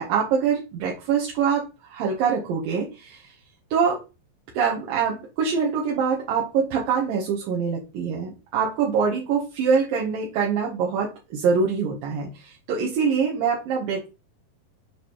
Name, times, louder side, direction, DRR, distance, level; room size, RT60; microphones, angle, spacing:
voice 1, 0.0-3.3 3.7-4.0 4.5-14.1, right 6 dB, 75° right, -2 dB, 2.7 m, -24 dB
9.3 x 4.0 x 3.0 m, 0.29 s
omnidirectional pair, 4.2 m